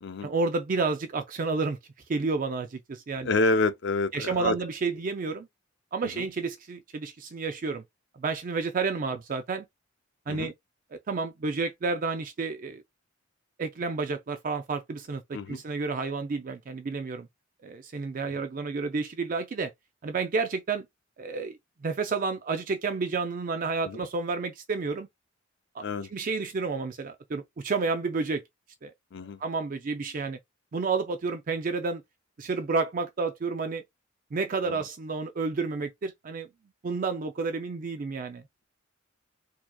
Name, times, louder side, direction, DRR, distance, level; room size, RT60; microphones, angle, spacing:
voice 1, 0.2-1.8 2.1-3.3 4.1-5.5 5.9-7.8 8.1-9.7 10.3-10.5 10.9-12.8 13.6-15.2 15.5-17.3 17.6-19.7 20.0-20.9 21.2-21.6 21.8-25.1 25.7-28.4 28.8-28.9 29.4-30.4 30.7-32.0 32.4-33.8 34.3-36.5 36.8-38.4, right 4 dB, 40° right, 0.4 m, -30 dB
voice 2, 3.2-4.6 6.1-6.2 10.3-10.5 15.3-15.6 23.9-24.0 25.8-26.1 29.1-29.4 34.7-34.8, left 3 dB, 60° left, 0.5 m, -28 dB
4.4 x 2.8 x 2.2 m
head